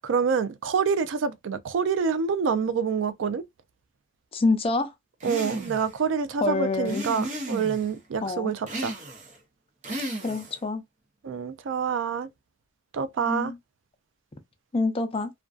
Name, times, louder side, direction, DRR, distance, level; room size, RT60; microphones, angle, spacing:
voice 1, 0.0-3.4 5.2-8.9 11.2-12.3 12.9-13.5, right 6 dB, 80° right, 0.4 m, -27 dB
voice 2, 4.3-4.9 6.4-7.0 8.2-8.5 10.2-10.8 13.2-13.6 14.7-15.3, left 3 dB, 30° left, 0.5 m, -26 dB
sound 1, 5.2-6.0 6.8-7.9 8.7-9.4 9.8-10.6, right 1 dB, 40° right, 0.7 m, -34 dB
2.4 x 2.2 x 2.3 m
head